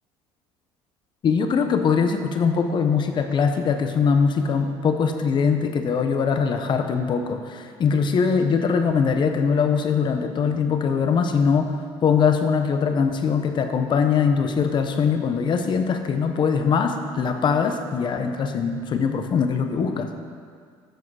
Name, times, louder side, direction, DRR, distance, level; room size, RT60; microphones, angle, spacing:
voice 1, 1.2-20.1, left 6 dB, 45° left, 7 dB, 0.9 m, -22 dB
14.0 x 5.1 x 4.8 m, 2.1 s
cardioid pair, 100°, 11 cm